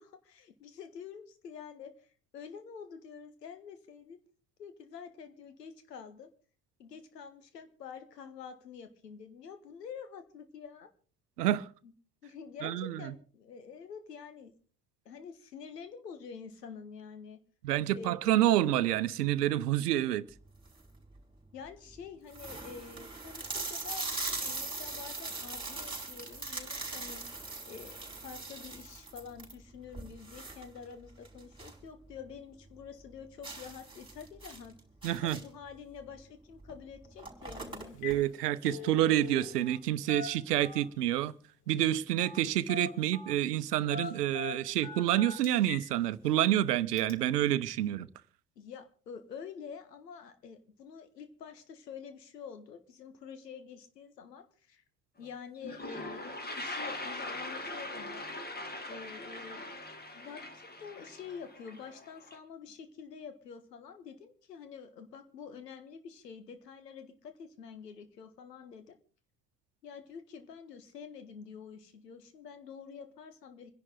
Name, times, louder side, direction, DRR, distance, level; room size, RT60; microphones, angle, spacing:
voice 1, 0.0-2.1 2.3-4.2 4.6-6.3 6.8-10.9 11.8-11.9 12.2-14.5 15.0-17.4 17.9-18.2 21.5-27.2 27.7-34.7 35.2-38.0 48.5-54.8 55.2-58.3 58.8-59.7 60.1-69.0 69.8-73.7, left 6 dB, 75° left, 1.6 m, -47 dB
voice 2, 11.4-11.7 12.6-13.1 17.6-20.3 35.0-35.4 38.0-41.3 41.7-48.1, right 13 dB, 70° right, 0.8 m, -28 dB
sound 1, 20.5-21.0 21.6-21.7 21.9-22.0 22.3-31.9 32.2-32.3 32.7-32.8 33.4-35.7 36.6-36.7 37.0-38.2, right 3 dB, 10° right, 4.4 m, -40 dB
Telephone, 37.4-37.6 37.9-38.2 38.5-39.8 40.1-41.0 42.2-42.4 42.7-43.4 43.9-45.9 46.3-46.4 47.0-47.1, left 6 dB, 50° left, 2.3 m, -42 dB
Toilet flush, 55.2-55.3 55.5-62.4, left 2 dB, 20° left, 2.4 m, -41 dB
26.5 x 11.0 x 3.8 m
figure-of-eight pair, 55°, 48 cm